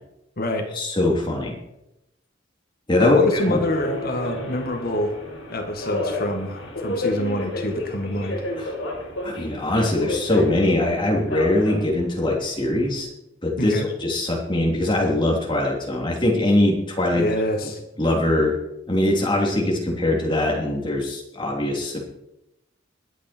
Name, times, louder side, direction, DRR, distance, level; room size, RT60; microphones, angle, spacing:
voice 1, 0.7-1.6 2.9-3.6 8.6-8.7 9.2-13.1 13.4-17.3 18.0-18.6 18.9-22.0, left 1 dB, 25° left, -1 dB, 3.2 m, -22 dB
voice 2, 3.0-5.1 5.5-8.5 13.6-13.9 17.1-17.8, left 1 dB, 50° left, 4 dB, 2.0 m, -26 dB
Subway metro underground, 3.3-13.0, left 1 dB, 75° left, 4.7 m, -31 dB
21.0 x 8.6 x 4.5 m, 0.88 s
head